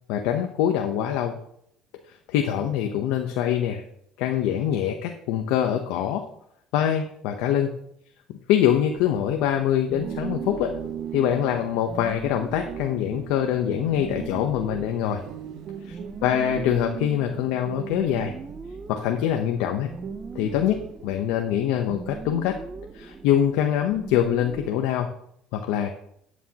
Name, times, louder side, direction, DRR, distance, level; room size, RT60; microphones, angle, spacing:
voice 1, 0.1-1.3 2.3-3.8 4.2-6.2 6.7-7.7 8.5-10.7 11.1-15.2 15.8-18.3 18.9-19.9 20.3-20.8 21.0-22.6 22.9-25.1 25.5-25.9, left 10 dB, 85° left, 4 dB, 0.8 m, -24 dB
sound 1, 8.9-24.7, right 4 dB, 25° right, 0.7 m, -41 dB
sound 2, 10.0-18.9 19.7-21.1, right 9 dB, 65° right, 1.0 m, -38 dB
11.5 x 8.3 x 2.9 m, 0.72 s
cardioid pair, 105°, 0 cm